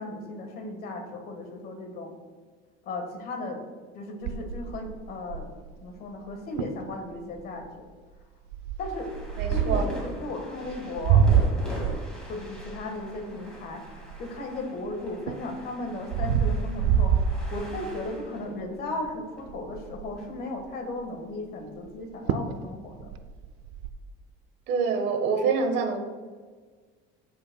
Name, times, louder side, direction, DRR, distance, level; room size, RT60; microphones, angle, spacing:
voice 1, 0.0-2.1 2.8-3.6 3.9-5.5 5.8-7.8 8.8-9.1 9.5-11.2 12.3-13.8 14.2-23.1, left 2 dB, 50° left, 4 dB, 1.5 m, -36 dB
sound 1, 4.2-5.7 6.3-6.4 6.6-6.8 7.4-7.7 8.5-10.0 10.7-14.6 15.0-18.1 18.5-18.8 19.1-19.2 19.4-20.2 21.9-22.0 22.3-22.6 22.9-23.9, right 7 dB, 85° right, 0.5 m, -26 dB
sound 2, 8.8-20.3, equal, 5° left, 2.0 m, -44 dB
voice 2, 9.4-9.9 24.7-26.0, right 5 dB, 60° right, 5 dB, 1.2 m, -26 dB
14.5 x 5.3 x 2.2 m, 1.5 s
cardioid pair, 150°, 20 cm